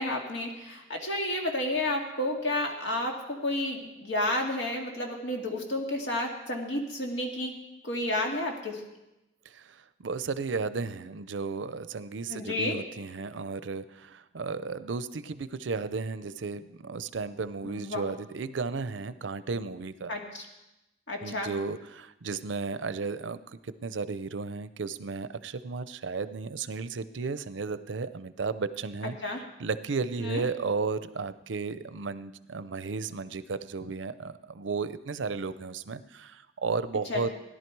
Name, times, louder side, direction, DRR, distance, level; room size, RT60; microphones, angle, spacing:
voice 1, 0.0-7.5 7.8-8.8 12.3-12.8 17.6-18.0 20.1-20.5 21.1-21.5 29.2-29.4 30.2-30.4 37.1-37.3, left 1 dB, 80° left, 1 dB, 2.3 m, -31 dB
voice 2, 9.5-20.1 21.2-37.3, right 4 dB, 90° right, 14 dB, 0.6 m, -34 dB
17.0 x 11.0 x 4.7 m, 0.95 s
head